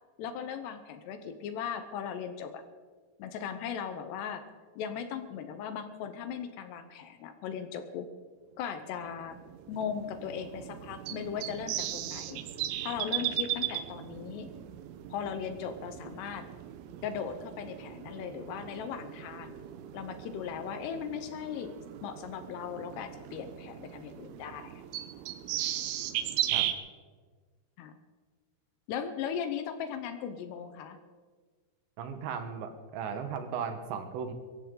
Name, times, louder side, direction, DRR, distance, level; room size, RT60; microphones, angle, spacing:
voice 1, 0.2-2.6 3.2-4.4 4.8-8.1 8.6-9.4 9.7-12.4 12.8-14.5 15.1-16.5 17.0-19.6 19.9-21.7 22.0-24.8 27.8-27.9 28.9-31.0, left 7 dB, 75° left, 9 dB, 2.8 m, -38 dB
sound 1, 9.0-26.7, right 12 dB, 90° right, 3.3 m, -37 dB
voice 2, 32.0-34.3, right 7 dB, 75° right, 7 dB, 3.3 m, -36 dB
22.5 x 15.0 x 3.9 m, 1.4 s
omnidirectional pair, 5.4 m